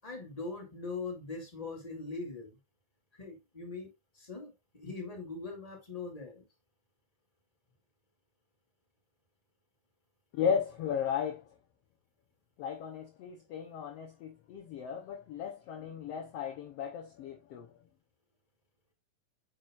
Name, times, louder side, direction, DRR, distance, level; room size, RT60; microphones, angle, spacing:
voice 1, 0.0-2.6 3.2-3.9 4.1-6.4, left 3 dB, 10° left, 2.4 m, -41 dB
voice 2, 10.3-11.4 12.6-17.7, left 7 dB, 75° left, 1.4 m, -35 dB
8.9 x 6.0 x 2.5 m
omnidirectional pair, 3.9 m